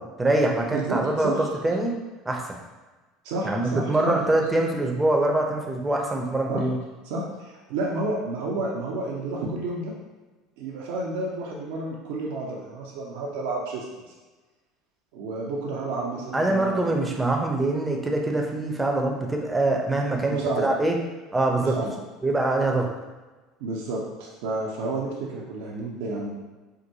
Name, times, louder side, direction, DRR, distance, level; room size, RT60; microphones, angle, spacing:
voice 1, 0.0-2.0 2.3-2.6 3.4-6.8 16.3-21.0 21.3-21.8 22.2-22.9, right 2 dB, 15° right, 1 dB, 0.7 m, -24 dB
voice 2, 0.7-1.5 3.2-4.2 6.5-6.7 7.0-9.9 10.6-14.0 15.1-17.0 20.1-20.7 21.6-22.0 23.6-26.3, right 2 dB, 70° right, -3 dB, 0.6 m, -30 dB
4.6 x 2.2 x 2.7 m, 1.2 s
hypercardioid pair, 75°, 0 cm